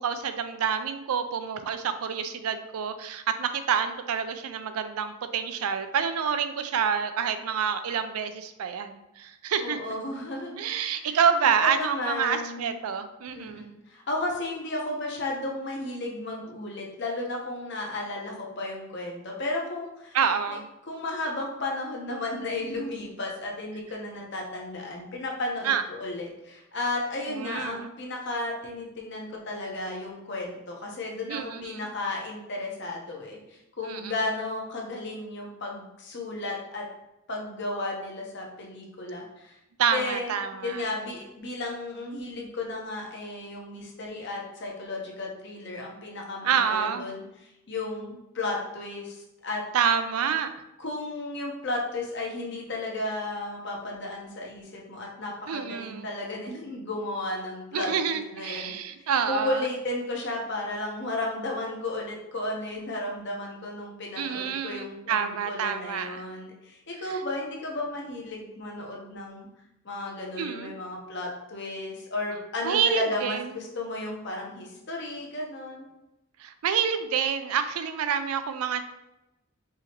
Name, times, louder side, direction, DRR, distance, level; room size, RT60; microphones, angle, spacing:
voice 1, 0.0-9.8 10.6-13.6 20.1-20.7 25.6-25.8 27.3-27.9 31.3-31.9 33.8-34.1 39.8-40.8 46.4-47.1 49.7-50.5 55.5-56.1 57.7-59.7 64.2-66.3 67.1-67.2 70.4-70.7 72.6-73.4 76.4-78.8, right 7 dB, 85° right, 9 dB, 0.4 m, -28 dB
voice 2, 9.6-10.6 11.0-11.2 11.6-12.8 13.3-20.2 20.5-20.6 20.8-36.9 37.3-39.6 39.9-40.3 40.6-49.6 50.8-58.7 59.0-69.5 69.8-75.9, left 2 dB, 50° left, -1 dB, 0.9 m, -34 dB
4.8 x 2.8 x 2.9 m, 0.93 s
head